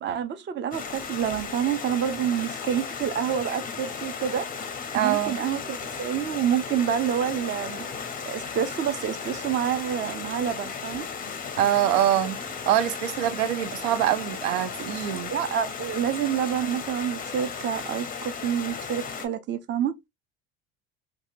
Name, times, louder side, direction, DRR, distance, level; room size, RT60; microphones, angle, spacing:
voice 1, 0.0-4.5 4.9-7.9 8.3-11.1 15.3-19.9, right 9 dB, 30° right, 0.5 m, -28 dB
Stream, 0.7-19.3, left 6 dB, 20° left, 0.5 m, -35 dB
voice 2, 4.9-5.4 11.6-12.4 12.7-15.3, right 12 dB, 75° right, 0.5 m, -24 dB
2.7 x 2.3 x 2.5 m
hypercardioid pair, 80°, 39 cm